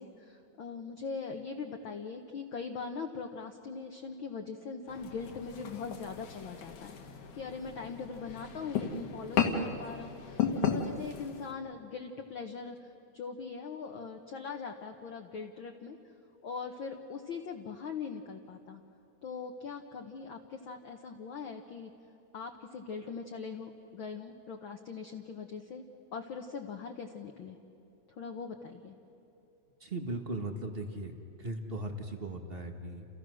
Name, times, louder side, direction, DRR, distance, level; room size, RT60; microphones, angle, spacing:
voice 1, 0.0-12.8 13.1-16.0 16.4-18.8 19.2-21.9 22.3-25.8 26.1-27.6 28.2-28.9, left 5 dB, 55° left, 3 dB, 1.5 m, -41 dB
sound 1, 4.9-11.5, left 7 dB, 75° left, 3.1 m, -35 dB
voice 2, 29.8-33.1, right 2 dB, 45° right, 4 dB, 0.7 m, -38 dB
29.5 x 29.0 x 6.4 m, 2.8 s
omnidirectional pair, 3.4 m